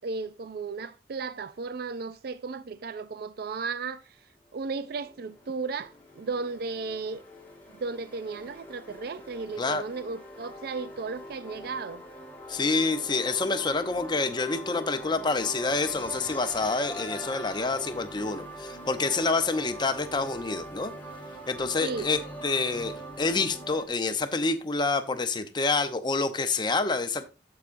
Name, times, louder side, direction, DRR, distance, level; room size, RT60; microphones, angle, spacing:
voice 1, 0.0-4.0 4.5-7.2 7.7-12.0 21.8-22.1, right 4 dB, 60° right, 0.4 m, -35 dB
sound 1, 4.6-23.9, equal, 10° left, 1.7 m, -42 dB
voice 2, 12.5-20.9 21.5-27.3, left 3 dB, 25° left, 0.7 m, -27 dB
14.5 x 4.8 x 2.6 m
head